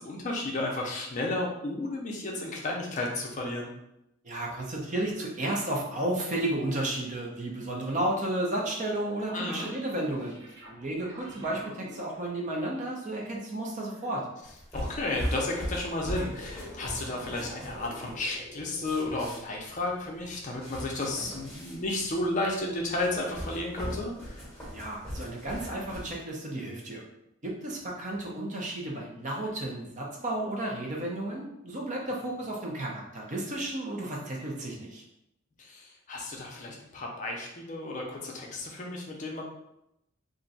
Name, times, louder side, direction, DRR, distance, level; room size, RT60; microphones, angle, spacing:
voice 1, 0.0-3.7 9.3-9.7 14.7-24.4 35.6-39.4, left 2 dB, 35° left, 0 dB, 0.5 m, -33 dB
voice 2, 4.2-10.4 10.7-14.3 24.7-27.0 27.4-35.0, right 1 dB, 35° right, -2 dB, 0.6 m, -33 dB
sound 1, 8.8-14.1 15.1-18.8, equal, 65° right, 1.2 m, -49 dB
sound 2, 14.4-26.1, equal, 5° left, 1.2 m, -40 dB
2.6 x 2.2 x 3.9 m, 0.83 s
head